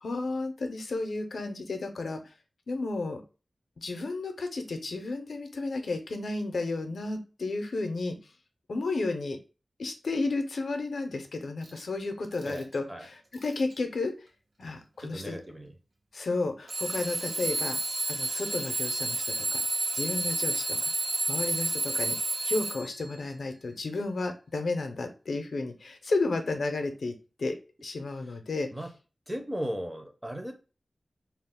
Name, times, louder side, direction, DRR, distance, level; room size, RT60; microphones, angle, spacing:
voice 1, 0.0-2.2 2.7-3.2 3.8-8.2 8.7-9.4 9.8-14.1 14.6-15.4 16.1-17.8 18.1-19.6 19.9-27.1 27.4-28.7, left 3 dB, 80° left, 6 dB, 0.4 m, -32 dB
Alarm / Clock, 11.6-11.8 12.3-12.8 13.3-13.7 14.6-14.7 16.7-23.1, right 2 dB, 70° right, 0.7 m, -31 dB
voice 2, 12.4-13.1 15.0-15.7 28.7-28.9 29.3-30.5, equal, 10° right, 3 dB, 0.5 m, -36 dB
2.3 x 2.0 x 3.5 m, 0.33 s
wide cardioid pair, 105°, 0 cm